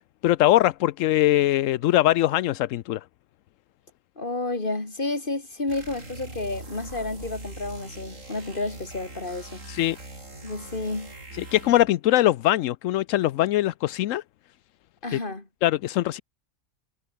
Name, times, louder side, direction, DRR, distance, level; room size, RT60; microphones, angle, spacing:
voice 1, 0.2-3.0 9.7-10.0 11.4-14.2 15.1-15.2 15.6-16.2, left 14 dB, 85° left, 1.0 m, -22 dB
voice 2, 4.2-9.6 10.4-11.1 15.0-15.5, left 2 dB, 40° left, 3.4 m, -31 dB
sound 1, 5.7-11.9, right 2 dB, 85° right, 5.9 m, -42 dB
omnidirectional pair, 1.3 m